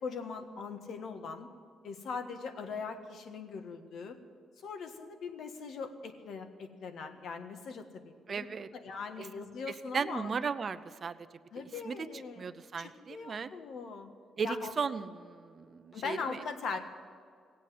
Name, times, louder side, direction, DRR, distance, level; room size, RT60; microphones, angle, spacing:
voice 1, 0.0-1.5 1.8-4.2 4.6-8.5 8.7-10.3 11.5-12.5 12.8-14.1 14.4-14.7 15.9-16.8, left 5 dB, 70° left, 7 dB, 1.5 m, -40 dB
voice 2, 8.3-8.7 9.2-9.3 9.7-11.2 11.8-12.1 12.4-13.5 14.4-16.4, right 5 dB, 45° right, 12 dB, 0.7 m, -36 dB
17.5 x 8.4 x 9.5 m, 2.2 s
cardioid pair, 90°, 0 cm